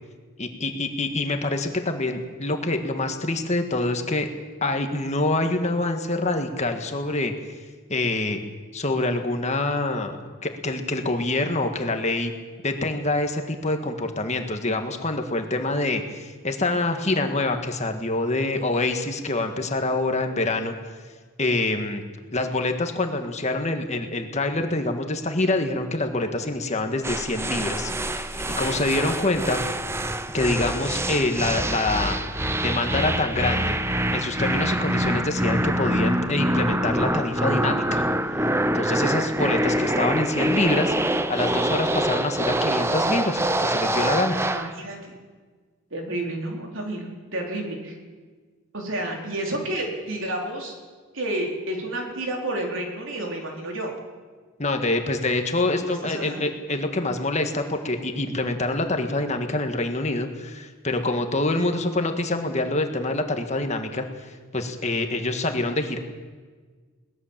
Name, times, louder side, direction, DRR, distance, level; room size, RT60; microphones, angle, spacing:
voice 1, 0.4-4.3 4.6-7.3 7.9-8.4 8.7-12.3 12.6-20.7 21.4-22.0 22.3-29.6 30.3-32.2 32.6-33.8 34.1-38.0 38.7-40.9 41.3-44.4 54.6-66.0, left 2 dB, 30° left, 5 dB, 1.7 m, -26 dB
sound 1, 27.0-44.7, right 1 dB, 10° right, 0.7 m, -25 dB
voice 2, 44.4-45.2 45.9-48.0 48.7-50.7 51.1-53.9 55.8-56.4, right 1 dB, 60° right, 1 dB, 4.3 m, -30 dB
22.5 x 19.5 x 7.5 m, 1.5 s
head